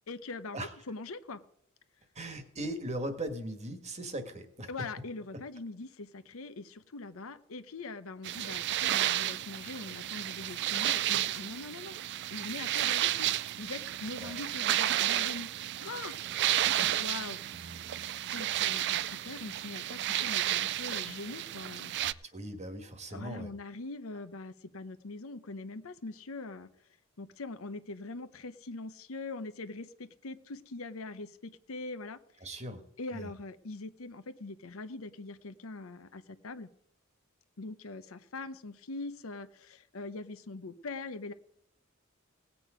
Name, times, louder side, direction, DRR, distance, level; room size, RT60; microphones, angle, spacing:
voice 1, 0.1-0.6 0.9-1.4 4.7-12.0 12.3-13.3 13.6-15.5 15.8-16.2 17.0-17.4 17.7-17.8 18.3-22.2 23.1-26.7 27.2-32.2 33.0-36.7 37.6-41.3, left 3 dB, 70° left, 12 dB, 0.8 m, -42 dB
voice 2, 2.1-4.9 14.2-14.4 16.5-17.2 17.5-18.1 22.0-23.5 32.4-32.8 33.1-33.3, right 1 dB, 30° right, 8 dB, 1.5 m, -40 dB
sound 1, 8.2-22.1, right 13 dB, 55° right, 0.4 m, -32 dB
18.0 x 8.4 x 5.0 m, 0.73 s
head